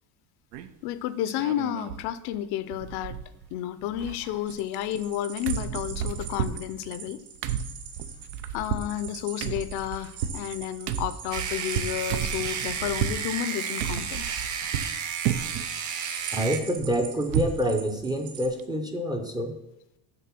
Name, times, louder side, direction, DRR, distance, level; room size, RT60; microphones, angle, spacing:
sound 1, 0.5-0.9 1.3-2.1 2.3-2.4 2.7-3.6 3.8-5.2 5.5-13.2 13.8-14.9 15.2-15.7 16.1-17.6 18.0-18.1 18.4-18.6, right 9 dB, 85° right, 0.8 m, -33 dB
voice 1, 0.8-3.2 3.5-7.2 8.5-14.3, left 11 dB, 60° left, 14 dB, 0.6 m, -31 dB
sound 2, 4.5-18.5, right 7 dB, 65° right, 2.7 m, -44 dB
sound 3, 11.3-16.6, right 7 dB, 40° right, 1.0 m, -32 dB
voice 2, 16.3-19.5, equal, 10° right, 4 dB, 0.5 m, -27 dB
7.0 x 6.9 x 6.0 m, 0.86 s
cardioid pair, 155°, 45 cm